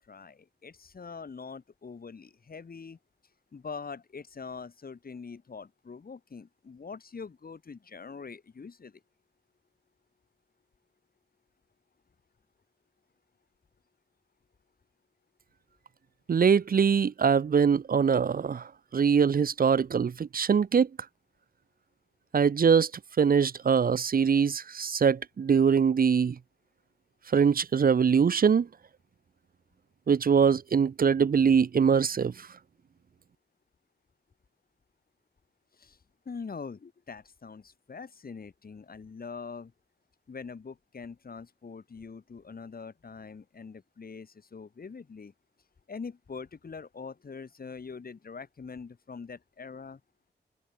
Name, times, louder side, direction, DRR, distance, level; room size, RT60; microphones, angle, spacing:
voice 1, 0.0-3.0 3.5-9.0 35.7-36.0 36.3-39.7 40.3-45.3 45.9-50.0, left 5 dB, 55° left, 2.6 m, -43 dB
voice 2, 16.3-18.6 18.9-20.9 22.3-22.9 23.2-26.3 27.3-28.7 30.1-32.3, right 6 dB, 55° right, 0.7 m, -23 dB
cardioid pair, 70°, 18 cm